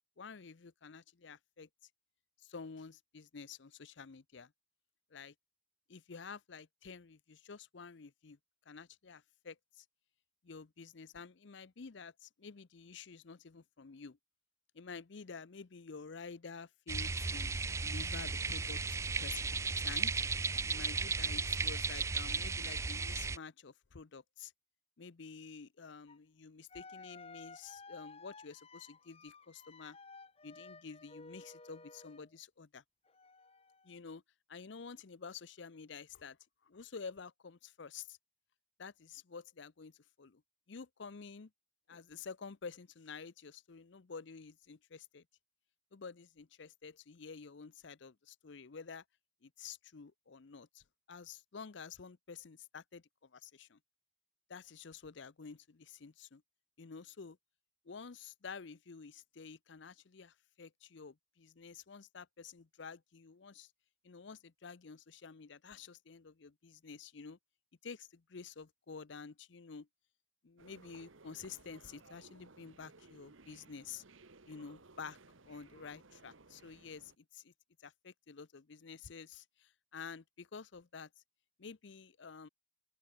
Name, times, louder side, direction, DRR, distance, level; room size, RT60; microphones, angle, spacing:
voice 1, 0.2-1.7 2.4-4.5 5.1-5.3 5.9-8.4 8.7-9.8 10.4-14.2 14.7-20.1 20.7-24.5 25.0-30.0 30.4-32.8 33.8-34.2 34.5-36.4 36.6-38.2 38.8-40.4 40.7-41.5 41.9-45.2 45.9-49.0 49.4-53.8 54.5-56.4 56.8-57.4 57.8-63.7 64.0-67.4 67.8-69.9 70.4-74.0 74.5-75.2 75.5-77.5 77.8-81.1 81.6-82.5, left 5 dB, 60° left, 0.6 m, -50 dB
sound 1, 16.9-23.4, right 4 dB, 15° right, 0.3 m, -35 dB
sound 2, 26.1-26.2 26.7-32.3 33.1-34.0, left 3 dB, 30° left, 1.7 m, -55 dB
sound 3, 70.6-77.2, right 3 dB, 80° right, 1.7 m, -60 dB
open air
head